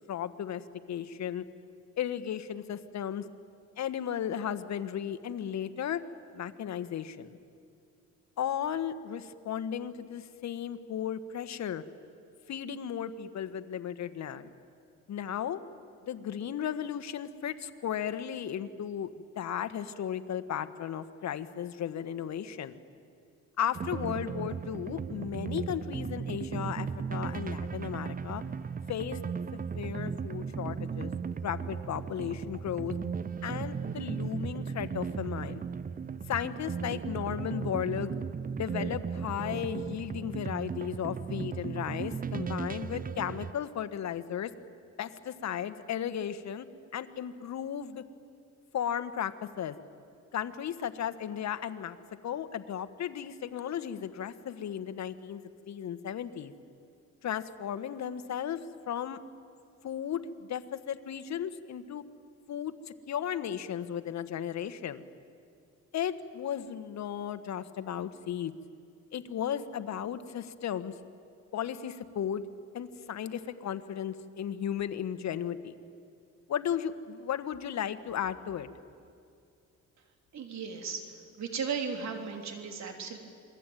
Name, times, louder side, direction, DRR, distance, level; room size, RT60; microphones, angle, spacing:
voice 1, 0.1-0.6 0.9-1.4 2.0-3.2 3.8-6.0 6.3-7.4 8.4-11.8 12.5-14.5 15.1-15.6 16.1-19.1 19.4-22.8 23.6-28.4 28.9-29.2 29.5-31.1 31.4-32.9 33.4-35.6 36.3-38.1 38.6-44.5 45.0-46.7 46.9-48.0 48.7-49.7 50.3-52.0 52.2-56.5 57.2-58.6 58.9-59.2 59.8-62.0 62.5-65.0 65.9-68.5 69.1-70.9 71.5-72.4 72.7-75.7 76.5-78.7, left 9 dB, 65° left, 10 dB, 1.5 m, -35 dB
sound 1, 23.8-43.5, right 6 dB, 30° right, 0.6 m, -36 dB
voice 2, 80.3-81.1 81.4-83.2, right 6 dB, 65° right, 3 dB, 4.0 m, -36 dB
27.5 x 21.5 x 9.2 m, 2.4 s
cardioid pair, 90°, 30 cm